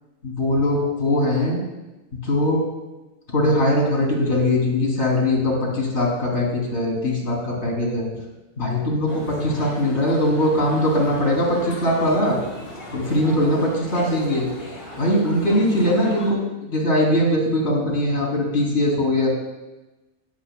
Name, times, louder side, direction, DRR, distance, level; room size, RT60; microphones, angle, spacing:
voice 1, 0.2-1.6 2.2-2.6 3.3-8.1 8.6-12.4 12.9-14.5 15.0-16.4 16.7-19.3, left 1 dB, 85° left, -3 dB, 3.5 m, -21 dB
sound 1, 9.1-16.3, left 1 dB, 60° left, 3.1 m, -38 dB
19.5 x 8.0 x 2.3 m, 1.1 s
omnidirectional pair, 1.1 m